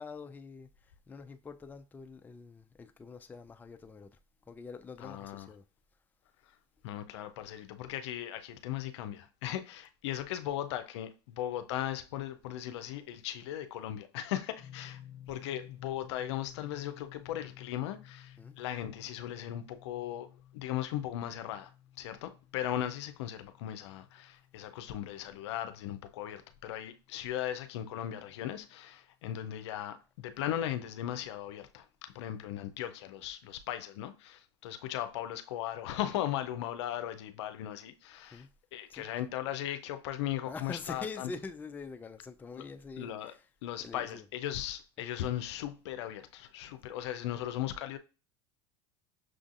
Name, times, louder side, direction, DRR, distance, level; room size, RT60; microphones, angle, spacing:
voice 1, 0.0-5.6 18.4-18.6 38.3-38.5 38.9-39.3 40.4-44.3 45.0-45.1, left 4 dB, 10° left, 0.3 m, -45 dB
voice 2, 5.0-5.5 6.8-15.0 15.3-21.7 22.0-38.4 38.7-41.3 43.0-43.3 43.6-48.0, left 12 dB, 75° left, 0.5 m, -37 dB
sound 1, 14.6-27.5, left 11 dB, 40° left, 0.7 m, -55 dB
6.1 x 2.5 x 2.4 m
hypercardioid pair, 95°, 14 cm